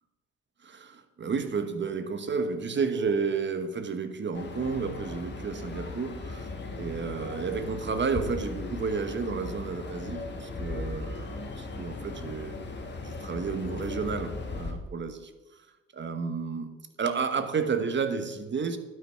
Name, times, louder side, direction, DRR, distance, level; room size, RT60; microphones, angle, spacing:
voice 1, 0.6-6.5 6.8-12.6 13.0-15.3 15.9-18.8, right 5 dB, 40° right, 10 dB, 1.1 m, -31 dB
sound 1, 4.3-14.7, left 3 dB, 35° left, 1.8 m, -38 dB
11.5 x 5.8 x 5.6 m, 1.2 s
cardioid pair, 90°, 30 cm